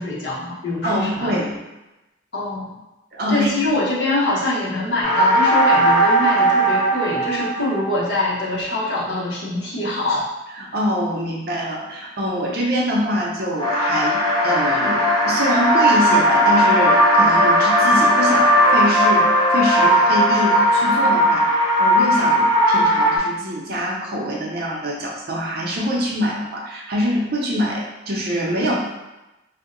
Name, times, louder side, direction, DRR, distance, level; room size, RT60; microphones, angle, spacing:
voice 1, 0.0-1.4 2.3-2.7 3.3-10.3, left 2 dB, 60° left, -7 dB, 0.9 m, -24 dB
voice 2, 0.8-1.6 3.1-3.5 10.6-28.8, equal, 50° right, -3 dB, 0.6 m, -24 dB
sound 1, 5.0-8.0 13.6-23.2, equal, 20° left, 0.6 m, -17 dB
2.6 x 2.1 x 3.8 m, 1.0 s
head